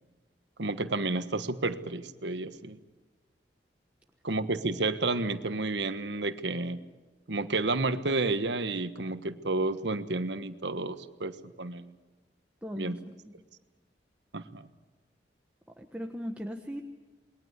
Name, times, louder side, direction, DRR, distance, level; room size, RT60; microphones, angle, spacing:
voice 1, 0.6-2.8 4.2-6.8 7.3-11.9 12.8-13.0 14.3-14.7, right 2 dB, 80° right, 11 dB, 1.4 m, -31 dB
voice 2, 12.6-13.0 15.8-16.8, equal, 10° right, 3 dB, 1.3 m, -37 dB
28.5 x 21.5 x 8.2 m, 1.3 s
head